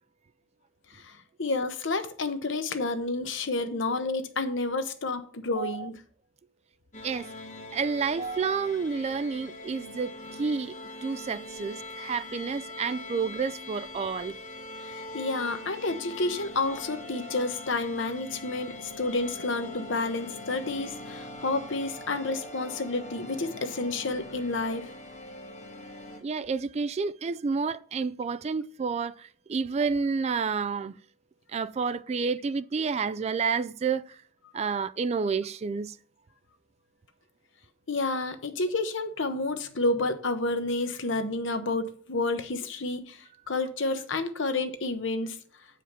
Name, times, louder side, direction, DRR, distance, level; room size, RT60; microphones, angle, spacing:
voice 1, 0.9-5.9 14.8-24.8 37.9-45.4, left 2 dB, 70° left, 1.0 m, -30 dB
voice 2, 5.6-5.9 7.0-7.3 7.7-10.1 10.4-10.8 11.0-14.4 26.2-31.0 31.5-34.2 34.5-36.0, right 5 dB, 35° right, 0.3 m, -30 dB
sound 1, 6.9-26.2, left 2 dB, 40° left, 1.3 m, -42 dB
8.1 x 5.0 x 5.7 m
head